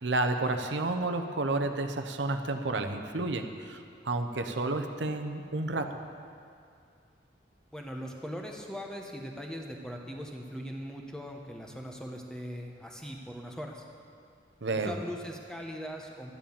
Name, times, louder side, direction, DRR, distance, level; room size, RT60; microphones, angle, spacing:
voice 1, 0.0-6.0 14.6-14.9, right 2 dB, 80° right, 6 dB, 0.9 m, -31 dB
voice 2, 7.7-13.8 14.7-16.3, equal, 5° left, 1 dB, 1.0 m, -40 dB
12.0 x 10.0 x 7.1 m, 2.3 s
head